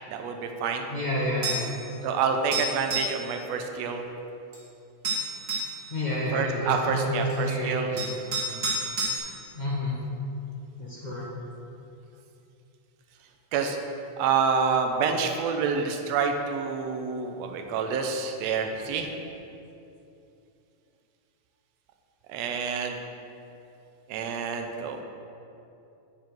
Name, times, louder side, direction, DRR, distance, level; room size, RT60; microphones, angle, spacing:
voice 1, 0.1-0.9 2.0-4.0 6.3-7.9 8.5-8.7 13.5-13.8 14.2-19.1 22.3-23.0 24.1-25.0, right 5 dB, 70° right, 4 dB, 1.8 m, -28 dB
voice 2, 0.9-1.7 5.9-8.0 9.5-10.0 10.8-11.2, left 1 dB, 40° left, -7 dB, 0.6 m, -29 dB
sound 1, 1.4-1.7 2.5-3.2 4.5-4.6 5.0-5.8 7.3-7.4 8.0-9.2, right 2 dB, 35° right, 1.9 m, -29 dB
9.3 x 7.5 x 4.6 m, 2.7 s
omnidirectional pair, 3.5 m